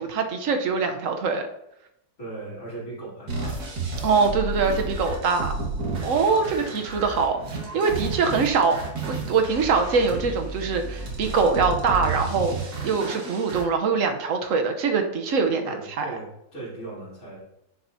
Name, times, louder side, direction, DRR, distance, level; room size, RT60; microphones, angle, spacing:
voice 1, 0.0-1.4 4.0-5.5 6.0-7.4 7.7-8.8 9.1-16.0, right 5 dB, 60° right, 5 dB, 1.2 m, -23 dB
voice 2, 2.2-3.6 6.6-6.8 15.6-17.4, right 2 dB, 60° left, -7 dB, 4.0 m, -38 dB
sound 1, 3.3-13.6, right 3 dB, 75° right, 2.2 m, -32 dB
9.9 x 7.1 x 2.7 m, 0.83 s
omnidirectional pair, 1.7 m